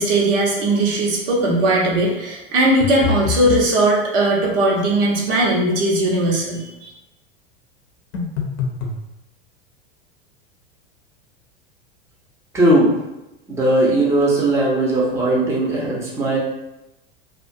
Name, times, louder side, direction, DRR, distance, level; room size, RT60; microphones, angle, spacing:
voice 1, 0.0-6.9, right 1 dB, 70° right, -3 dB, 0.9 m, -18 dB
sound 1, 2.8-3.7 8.1-9.0, left 6 dB, 50° left, 0.6 m, -25 dB
voice 2, 12.5-13.0 13.5-16.4, right 1 dB, 10° right, -5 dB, 0.7 m, -18 dB
2.4 x 2.3 x 2.5 m, 0.93 s
hypercardioid pair, 100°, 30 cm